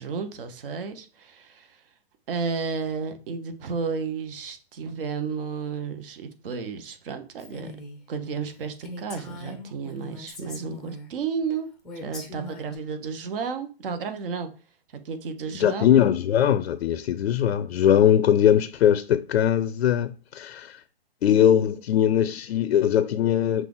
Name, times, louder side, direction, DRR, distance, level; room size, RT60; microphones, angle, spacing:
voice 1, 0.0-1.8 2.3-7.7 8.1-11.7 12.0-14.5 15.0-15.9, right 5 dB, 60° right, 0.9 m, -32 dB
Female speech woman speaking, 7.4-8.0 8.4-8.5 8.8-11.1 11.8-12.8, left 1 dB, ahead, 0.5 m, -40 dB
voice 2, 15.6-20.8 21.2-23.7, left 10 dB, 80° left, 0.5 m, -21 dB
5.6 x 2.4 x 3.8 m
hypercardioid pair, 150°, 32 cm